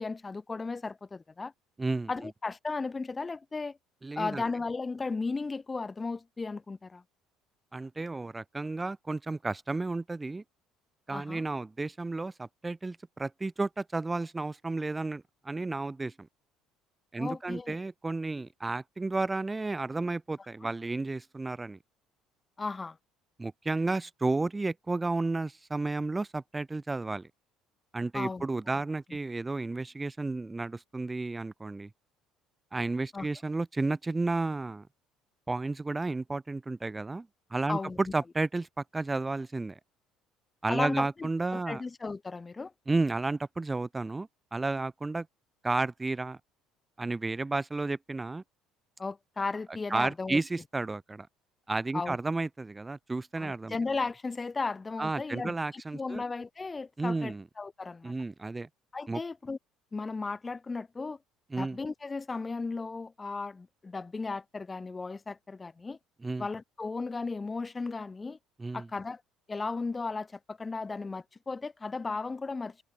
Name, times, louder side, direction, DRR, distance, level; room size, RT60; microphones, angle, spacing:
voice 1, 0.0-1.5 2.1-3.8 4.2-7.0 11.1-11.4 17.2-17.8 22.6-23.0 28.1-28.8 33.1-33.3 37.7-38.0 40.7-42.7 49.0-50.4 51.9-52.2 53.4-58.1 58.9-59.6 59.9-61.2 61.6-66.0 66.4-68.4 68.7-69.2 69.5-72.8, left 4 dB, 20° left, 2.3 m, -35 dB
voice 2, 1.8-2.1 4.0-4.4 7.7-10.4 11.1-16.3 17.1-21.8 23.4-27.3 27.9-31.9 32.7-34.9 35.5-39.8 40.6-41.8 42.9-45.3 45.6-46.4 47.0-48.4 49.9-51.3 51.7-53.8 55.0-56.2 57.0-57.4 58.0-58.7 59.1-59.2 61.5-61.8 66.2-66.5 68.6-68.9, right 3 dB, 15° right, 1.6 m, -32 dB
open air
cardioid pair, 120°, 0 cm